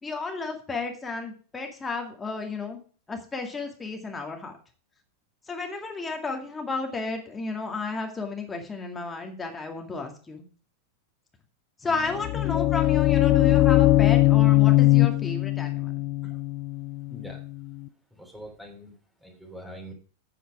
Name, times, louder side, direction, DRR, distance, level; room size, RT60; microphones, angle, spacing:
voice 1, 0.0-2.8 3.1-4.6 5.5-10.5 11.8-15.9, left 3 dB, 15° left, 2 dB, 2.2 m, -33 dB
sound 1, 11.9-17.8, left 17 dB, 35° left, 0.8 m, -21 dB
voice 2, 17.1-17.4 18.1-18.9 19.2-19.9, equal, 5° right, 1 dB, 3.4 m, -43 dB
9.2 x 8.7 x 4.9 m, 0.40 s
figure-of-eight pair, 90°, 0 cm